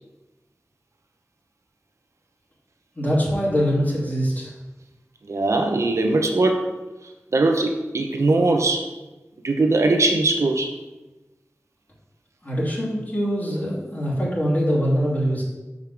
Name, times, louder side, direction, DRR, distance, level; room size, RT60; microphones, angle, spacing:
voice 1, 3.0-4.5 12.4-15.4, equal, 35° left, -7 dB, 2.7 m, -23 dB
voice 2, 5.3-6.7 7.3-8.9 9.4-10.7, right 2 dB, 85° right, 4 dB, 0.8 m, -20 dB
6.0 x 5.4 x 6.2 m, 1.1 s
wide cardioid pair, 45°, 5 cm